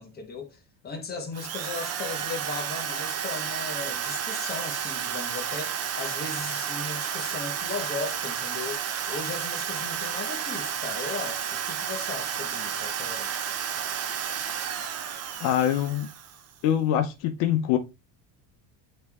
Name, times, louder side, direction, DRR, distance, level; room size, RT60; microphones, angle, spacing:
voice 1, 0.0-13.3, left 4 dB, 20° left, 1.2 m, -37 dB
Drill, 1.3-16.5, right 8 dB, 35° right, 0.7 m, -32 dB
voice 2, 15.4-16.1 16.6-17.8, left 11 dB, 70° left, 0.9 m, -24 dB
8.8 x 3.2 x 3.6 m
cardioid pair, 170°, 45 cm